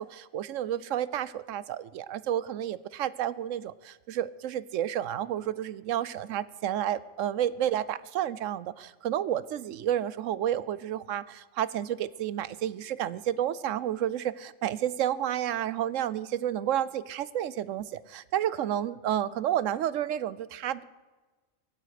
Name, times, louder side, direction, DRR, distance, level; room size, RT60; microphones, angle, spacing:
voice 1, 0.0-20.8, right 11 dB, 80° right, 18 dB, 1.0 m, -31 dB
23.0 x 9.0 x 5.0 m, 1.3 s
omnidirectional pair, 1.3 m